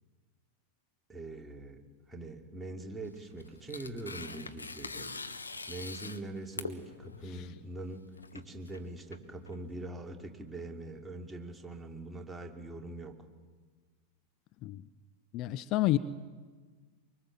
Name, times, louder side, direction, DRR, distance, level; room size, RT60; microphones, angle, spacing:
voice 1, 1.1-1.8 2.1-5.1 5.7-13.3, right 2 dB, 10° right, 2.9 m, -43 dB
Tearing, 3.0-9.8, left 3 dB, 80° left, 1.2 m, -44 dB
voice 2, 15.3-16.0, left 16 dB, 40° left, 0.7 m, -28 dB
24.5 x 24.0 x 7.5 m
figure-of-eight pair, 90°, 0 cm